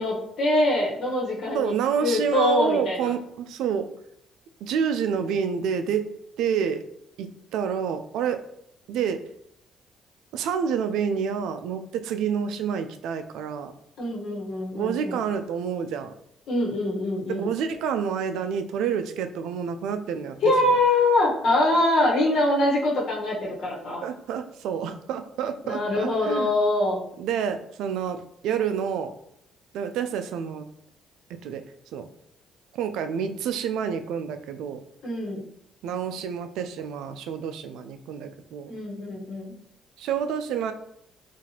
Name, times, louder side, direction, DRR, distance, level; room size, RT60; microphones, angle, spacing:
voice 1, 0.0-1.7 2.0-3.1 14.0-15.2 16.5-17.5 20.4-24.1 25.6-27.0 35.0-35.4 38.7-39.5, left 1 dB, 70° left, -3 dB, 1.2 m, -24 dB
voice 2, 1.5-3.9 4.6-6.1 6.4-6.8 7.2-8.4 8.9-9.2 10.3-13.7 14.7-16.1 17.3-20.4 20.6-20.8 24.0-26.5 27.2-29.1 29.7-30.7 31.4-31.6 31.9-32.1 32.7-34.8 35.8-38.7 40.0-40.7, right 7 dB, 80° right, 9 dB, 0.3 m, -28 dB
3.9 x 2.5 x 2.8 m, 0.74 s
supercardioid pair, 65°, 0 cm